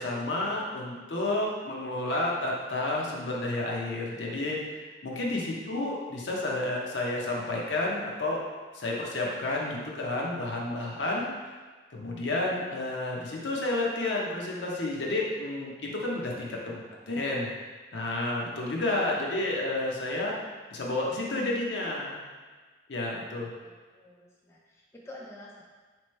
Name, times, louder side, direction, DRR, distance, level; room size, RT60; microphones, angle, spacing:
voice 1, 0.0-4.6 5.0-8.4 8.7-11.3 11.9-17.5 17.9-20.4 20.7-22.2 22.9-23.5, left 2 dB, 75° left, -2 dB, 0.8 m, -30 dB
voice 2, 23.6-25.6, left 1 dB, 15° left, -3 dB, 0.3 m, -48 dB
4.3 x 3.0 x 3.1 m, 1.4 s
head